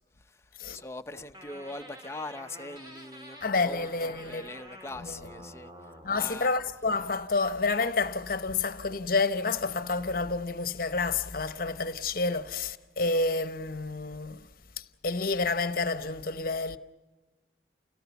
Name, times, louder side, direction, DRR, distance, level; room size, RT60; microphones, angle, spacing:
voice 1, 0.2-6.5, left 2 dB, 15° left, 0.7 m, -42 dB
sound 1, 1.3-6.3, equal, 25° right, 2.2 m, -48 dB
voice 2, 3.4-4.5 5.0-5.1 6.0-14.5 14.8-16.8, left 3 dB, 50° left, 0.9 m, -29 dB
29.5 x 18.0 x 7.0 m
head